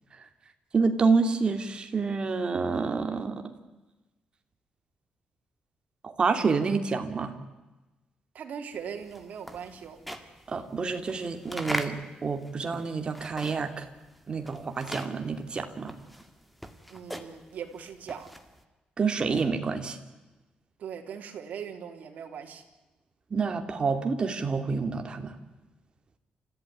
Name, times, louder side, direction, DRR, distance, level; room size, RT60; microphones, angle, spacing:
voice 1, 0.7-3.5 6.0-7.3 10.5-13.9 14.3-15.9 19.0-20.0 23.3-25.3, right 4 dB, 35° right, 6 dB, 2.7 m, -28 dB
voice 2, 8.3-10.0 16.9-18.3 20.8-22.6, right 7 dB, 65° right, 4 dB, 3.5 m, -40 dB
sound 1, 8.8-13.9 14.1-18.6, equal, ahead, 2.0 m, -40 dB
29.5 x 15.0 x 9.8 m, 1.1 s
cardioid pair, 145°, 3 cm